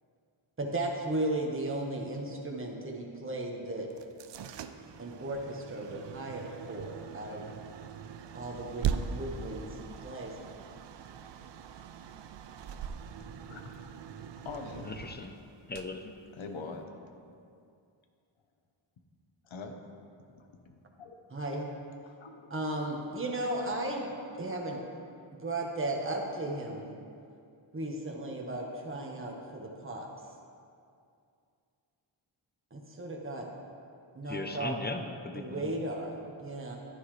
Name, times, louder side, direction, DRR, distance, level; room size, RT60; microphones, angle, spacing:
voice 1, 0.6-3.9 5.0-7.4 8.3-10.3 21.3-21.7 22.5-24.8 25.4-26.9 27.7-30.1 32.7-33.5 34.1-34.7 35.4-36.8, right 1 dB, 25° right, -1 dB, 1.4 m, -35 dB
sound 1, 3.9-16.8, right 7 dB, 65° right, 0.6 m, -41 dB
voice 2, 13.4-13.9 14.4-14.9 16.3-16.9 17.2-17.3 19.4-19.8 20.3-21.2 22.1-22.5, left 4 dB, 75° left, 4 dB, 1.1 m, -44 dB
voice 3, 14.8-15.3 15.7-16.1 34.3-35.7, left 2 dB, 20° left, 6 dB, 0.7 m, -38 dB
11.0 x 9.6 x 3.3 m, 2.4 s
cardioid pair, 75°, 47 cm